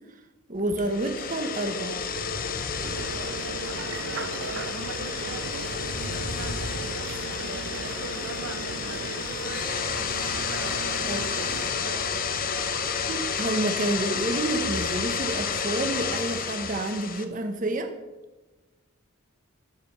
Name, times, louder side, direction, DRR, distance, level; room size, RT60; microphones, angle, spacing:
voice 1, 0.5-2.0 11.0-11.2 13.1-17.9, right 2 dB, 35° right, 6 dB, 0.8 m, -29 dB
sound 1, 0.7-17.2, left 5 dB, 40° left, 0.7 m, -30 dB
sound 2, 2.8-11.7, right 7 dB, 60° right, 0.3 m, -38 dB
voice 2, 3.2-9.2 10.3-12.3, right 3 dB, 80° right, 8 dB, 0.9 m, -42 dB
12.5 x 5.1 x 6.4 m, 1.1 s
head